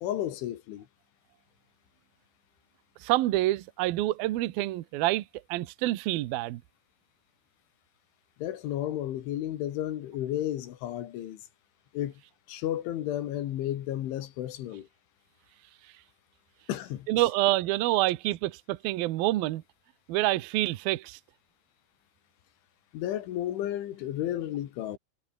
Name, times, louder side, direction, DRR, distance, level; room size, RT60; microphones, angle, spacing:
voice 1, 0.0-0.9 8.4-11.4 11.9-12.1 12.5-14.9 16.7-17.1 22.9-25.0, left 12 dB, 70° left, 4.0 m, -32 dB
voice 2, 3.0-5.2 5.5-6.6 17.1-19.6 20.1-21.2, right 17 dB, 85° right, 2.1 m, -27 dB
omnidirectional pair, 5.9 m